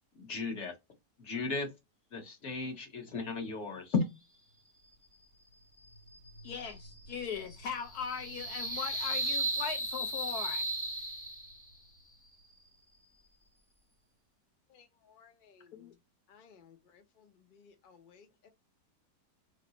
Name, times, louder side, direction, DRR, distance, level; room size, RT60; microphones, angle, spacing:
voice 1, 0.2-0.7 1.2-1.7 2.1-4.0, left 4 dB, 45° left, 1.2 m, -34 dB
sound 1, 5.8-11.8, right 1 dB, 20° left, 0.5 m, -37 dB
voice 2, 6.4-10.6 15.7-15.9, left 7 dB, 70° left, 1.1 m, -39 dB
voice 3, 14.7-16.0 16.3-18.5, left 6 dB, 85° left, 0.4 m, -60 dB
3.2 x 2.6 x 3.9 m
omnidirectional pair, 1.9 m